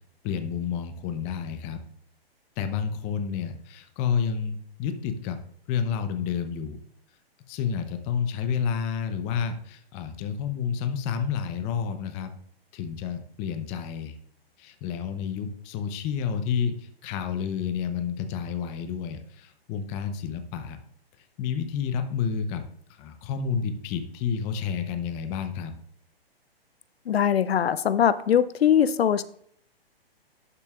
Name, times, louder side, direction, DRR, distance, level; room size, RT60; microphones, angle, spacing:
voice 1, 0.2-1.8 2.6-5.4 5.7-6.8 7.5-12.3 12.7-14.1 14.6-20.8 21.4-22.6 22.9-25.7, left 7 dB, 20° left, 8 dB, 0.7 m, -30 dB
voice 2, 27.1-29.2, left 9 dB, 75° left, 15 dB, 0.6 m, -21 dB
11.5 x 6.8 x 2.4 m, 0.64 s
hypercardioid pair, 135°, 31 cm